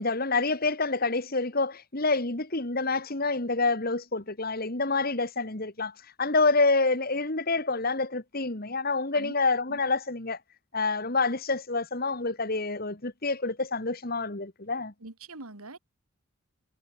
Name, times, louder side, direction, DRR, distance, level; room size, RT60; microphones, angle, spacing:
voice 1, 0.0-5.9 6.2-10.4 10.7-14.9, left 3 dB, 45° left, 1.9 m, -27 dB
voice 2, 15.0-15.8, right 2 dB, 85° right, 2.9 m, -43 dB
head